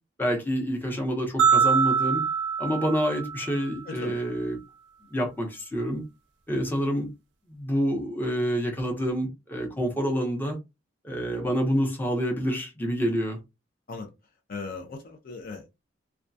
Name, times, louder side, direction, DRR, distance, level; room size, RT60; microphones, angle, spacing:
voice 1, 0.2-2.2 2.6-4.6 5.1-6.0 6.5-7.1 7.5-10.6 11.0-13.4, equal, 10° left, 0.7 m, -27 dB
sound 1, 1.4-3.8, right 6 dB, 65° right, 0.4 m, -24 dB
voice 2, 3.9-4.2 13.9-14.1 14.5-15.7, left 3 dB, 50° left, 0.4 m, -37 dB
2.2 x 2.2 x 2.6 m
head